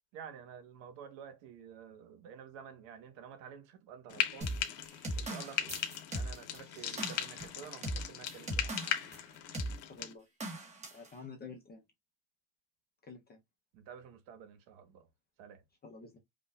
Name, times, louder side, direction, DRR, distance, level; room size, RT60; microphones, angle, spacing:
voice 1, 0.1-4.5 5.1-5.8 6.1-8.8 13.7-15.1 15.4-15.6, right 7 dB, 80° right, 1.3 m, -50 dB
Frying (food), 4.1-10.1, left 11 dB, 70° left, 0.9 m, -38 dB
sound 1, 4.4-9.2 9.5-9.8 10.4-11.1, right 1 dB, 15° right, 1.1 m, -39 dB
voice 2, 9.9-10.3 10.9-11.8 13.0-13.4 15.8-16.2, left 4 dB, 20° left, 0.5 m, -49 dB
5.3 x 2.6 x 2.2 m
cardioid pair, 170°, 44 cm